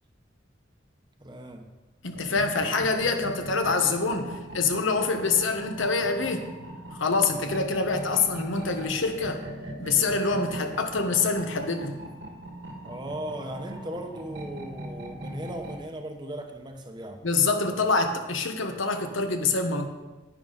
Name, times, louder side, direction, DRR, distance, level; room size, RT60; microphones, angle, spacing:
voice 1, 1.2-1.7 12.8-17.2, right 1 dB, 20° right, 5 dB, 0.9 m, -37 dB
voice 2, 2.0-6.5 6.9-9.4 9.8-11.9 17.2-19.9, left 4 dB, 85° left, 6 dB, 1.2 m, -26 dB
sound 1, 2.1-15.8, right 1 dB, 70° right, 1.8 m, -40 dB
10.5 x 10.0 x 4.0 m, 1.2 s
head